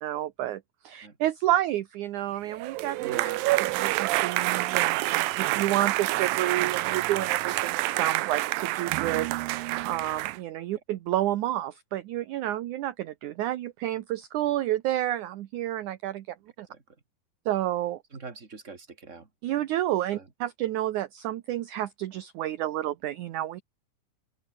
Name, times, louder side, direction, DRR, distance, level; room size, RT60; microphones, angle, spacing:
voice 1, 0.0-3.0 3.6-9.3 9.6-16.7 17.5-18.0 19.4-23.6, right 13 dB, 70° right, 2.3 m, -30 dB
sound 1, 2.5-10.4, right 18 dB, 85° right, 2.5 m, -27 dB
voice 2, 3.0-3.4 16.7-16.8 18.1-19.3 20.1-20.3, right 4 dB, 25° right, 2.6 m, -42 dB
open air
omnidirectional pair, 4.0 m